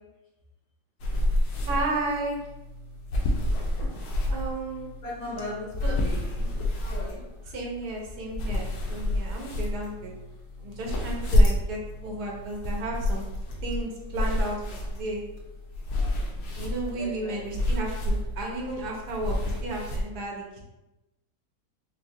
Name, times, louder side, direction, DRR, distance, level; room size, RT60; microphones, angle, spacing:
Pull something out of pocket, 1.0-20.0, left 1 dB, 90° left, 1.1 m, -29 dB
voice 1, 1.7-2.4 4.3-4.9 5.8-5.9 7.5-10.1 10.6-13.2 13.6-15.2 16.6-19.4 19.6-20.6, right 2 dB, 90° right, -1 dB, 1.3 m, -33 dB
voice 2, 5.0-6.5 6.8-7.6 15.9-16.6 16.9-17.8, left 2 dB, 60° left, -9 dB, 1.2 m, -39 dB
4.5 x 2.1 x 2.7 m, 0.99 s
omnidirectional pair, 1.6 m